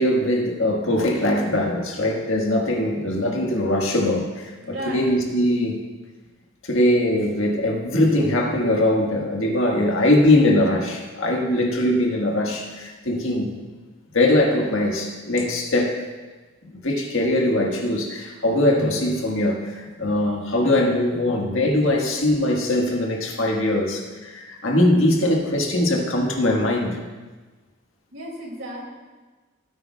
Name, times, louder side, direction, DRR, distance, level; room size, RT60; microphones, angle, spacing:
voice 1, 0.0-5.8 6.6-13.5 14.1-16.0 16.6-27.0, left 1 dB, 70° left, 1 dB, 1.6 m, -21 dB
voice 2, 4.6-5.2 21.1-21.2 21.6-21.7 28.1-28.9, right 1 dB, 60° right, -1 dB, 2.5 m, -34 dB
17.0 x 8.9 x 2.3 m, 1.3 s
head